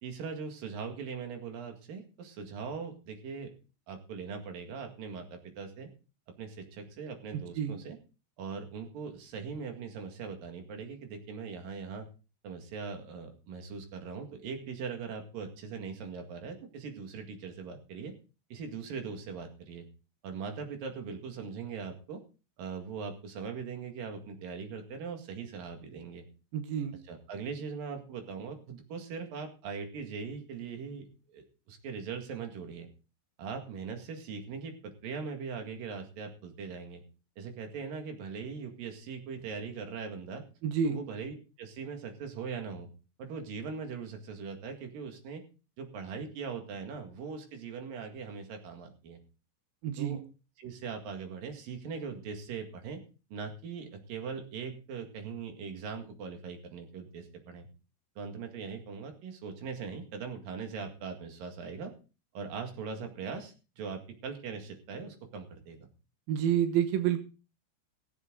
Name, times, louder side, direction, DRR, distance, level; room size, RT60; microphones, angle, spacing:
voice 1, 0.0-3.5 3.9-5.9 6.4-8.0 8.4-12.1 12.4-18.1 18.5-19.9 20.2-22.2 22.6-26.2 27.1-32.9 33.4-37.0 37.4-40.4 40.8-42.9 43.2-45.4 45.8-49.2 50.0-50.2 50.6-53.0 53.3-57.7 58.2-61.9 62.3-65.8, right 5 dB, 55° right, 5 dB, 3.0 m, -40 dB
voice 2, 26.5-26.9 40.6-41.0 49.8-50.2 66.3-67.2, right 9 dB, 80° right, 7 dB, 2.1 m, -28 dB
21.5 x 8.2 x 3.9 m, 0.34 s
omnidirectional pair, 6.0 m